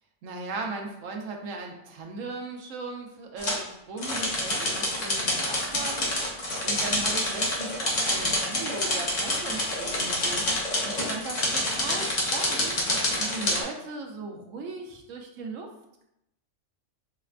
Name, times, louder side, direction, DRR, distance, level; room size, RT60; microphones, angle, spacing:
voice 1, 0.2-10.6 10.8-15.7, right 3 dB, 85° right, 2 dB, 1.0 m, -38 dB
sound 1, 3.4-3.6 4.0-13.6, left 1 dB, 40° left, 0.7 m, -27 dB
4.7 x 2.1 x 2.4 m, 0.82 s
omnidirectional pair, 1.3 m